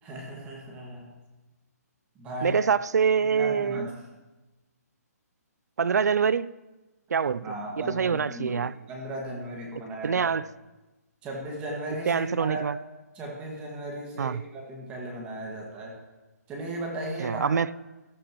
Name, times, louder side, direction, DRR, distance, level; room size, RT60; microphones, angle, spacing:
voice 1, 0.0-1.1 2.2-2.6 3.2-3.9 7.4-10.2 11.2-12.6 13.1-16.0 16.5-17.5, right 1 dB, 15° right, -1 dB, 1.8 m, -36 dB
voice 2, 2.4-3.9 5.8-6.5 7.1-7.5 7.9-8.8 10.0-10.5 12.1-12.8 14.2-14.4 17.2-17.7, right 6 dB, 75° right, 19 dB, 0.5 m, -25 dB
14.5 x 13.0 x 3.0 m, 1.1 s
hypercardioid pair, 165°, 9 cm